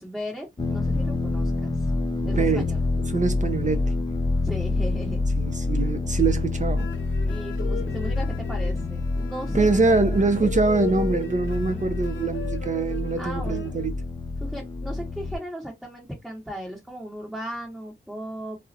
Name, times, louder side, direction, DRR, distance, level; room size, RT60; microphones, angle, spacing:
voice 1, 0.0-1.9 2.2-2.8 4.4-5.2 7.2-9.7 11.7-11.9 13.2-13.7 14.4-18.6, equal, ahead, 1.0 m, -36 dB
sound 1, 0.6-15.4, left 3 dB, 20° left, 0.5 m, -27 dB
voice 2, 2.2-2.7 3.1-3.9 5.4-6.9 9.5-13.9, right 4 dB, 40° right, 0.5 m, -24 dB
sound 2, 6.8-13.9, left 10 dB, 75° left, 0.4 m, -38 dB
2.3 x 2.0 x 2.6 m
wide cardioid pair, 75°, 20 cm